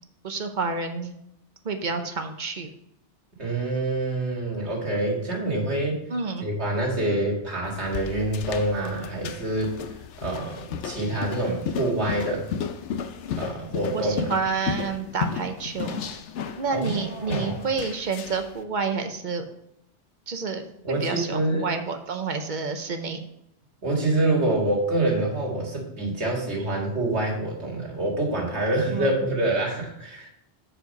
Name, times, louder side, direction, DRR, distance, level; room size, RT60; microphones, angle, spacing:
voice 1, 0.2-1.1 1.6-2.7 6.1-6.5 13.9-16.2 16.6-19.4 20.3-23.2 28.9-29.2, right 4 dB, 50° right, 6 dB, 0.8 m, -29 dB
voice 2, 3.4-6.0 6.4-9.8 10.2-12.4 13.4-14.3 16.7-17.6 20.8-21.7 23.8-30.3, right 2 dB, 75° right, -1 dB, 2.2 m, -26 dB
sound 1, 7.6-18.5, left 7 dB, 90° left, 0.9 m, -34 dB
7.9 x 4.4 x 5.1 m, 0.76 s
omnidirectional pair, 1.2 m